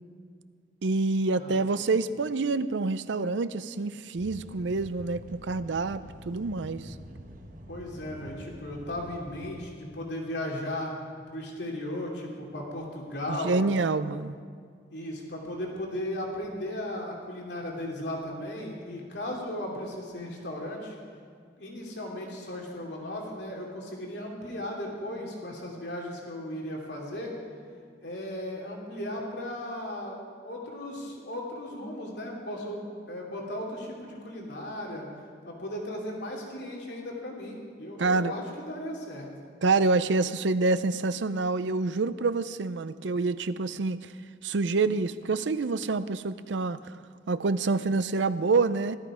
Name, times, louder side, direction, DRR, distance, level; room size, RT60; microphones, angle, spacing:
voice 1, 0.8-6.9 13.3-14.4 38.0-38.3 39.6-44.1 44.4-46.8 47.3-49.0, right 3 dB, 90° right, 14 dB, 0.5 m, -27 dB
sound 1, 4.2-9.6, equal, 45° right, 1.1 m, -46 dB
voice 2, 7.7-10.9 11.3-13.6 14.9-20.9 21.6-27.3 28.0-35.1 35.4-39.3, left 1 dB, 75° left, -1 dB, 2.8 m, -36 dB
17.0 x 12.5 x 5.0 m, 2.1 s
head